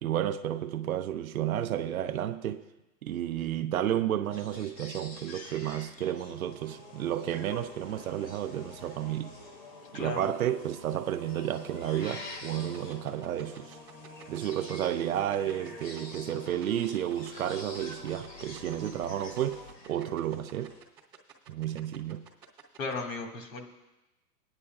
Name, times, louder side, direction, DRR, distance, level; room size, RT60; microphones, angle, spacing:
voice 1, 0.0-2.6 3.0-9.3 9.9-13.8 14.3-20.8 21.5-22.2, right 11 dB, 60° right, 0.6 m, -32 dB
sound 1, 4.3-20.8, left 2 dB, 90° left, 2.5 m, -49 dB
sound 2, 6.0-19.7, left 2 dB, 25° left, 1.1 m, -49 dB
voice 2, 9.9-10.3 22.8-23.6, left 3 dB, 55° left, 1.8 m, -35 dB
sound 3, 12.7-22.9, right 9 dB, 10° right, 0.9 m, -52 dB
23.5 x 9.8 x 2.3 m
hypercardioid pair, 160°, 49 cm